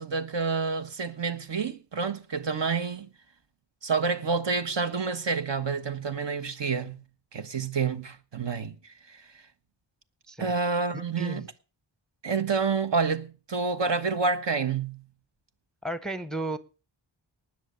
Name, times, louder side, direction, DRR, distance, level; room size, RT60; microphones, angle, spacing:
voice 1, 0.0-3.1 3.8-7.0 7.3-9.4 10.4-11.5 12.2-15.0, right 5 dB, 65° right, 1.3 m, -28 dB
voice 2, 15.8-16.6, right 1 dB, ahead, 0.7 m, -33 dB
19.0 x 6.5 x 6.7 m
wide cardioid pair, 95°, 47 cm